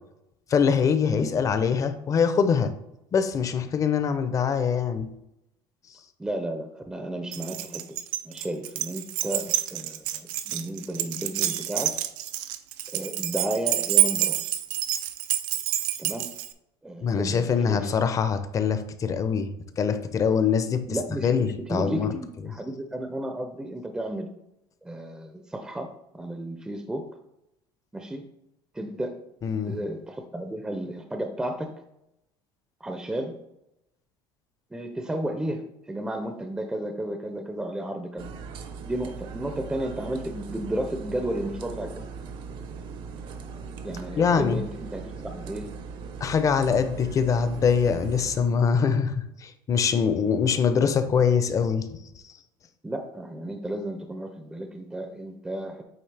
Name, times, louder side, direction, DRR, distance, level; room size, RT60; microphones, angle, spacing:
voice 1, 0.5-2.7 3.1-5.1 17.0-19.5 19.8-20.9 21.2-22.1 29.4-29.8 44.2-44.6 46.2-51.9, left 6 dB, 30° left, 10 dB, 0.6 m, -23 dB
voice 2, 6.2-11.9 12.9-14.4 16.0-16.3 16.8-17.9 20.9-24.3 24.8-25.9 26.1-27.1 27.9-28.3 28.7-29.2 29.6-31.7 32.8-33.3 34.7-38.3 38.8-42.1 43.8-45.7 52.8-55.8, right 1 dB, 5° right, 6 dB, 0.5 m, -33 dB
Keys jangling, 7.3-16.5, right 13 dB, 90° right, 0.5 m, -28 dB
sound 1, 38.2-48.4, right 5 dB, 50° right, 0.7 m, -39 dB
8.7 x 3.2 x 3.3 m, 0.85 s
cardioid pair, 120°, 10 cm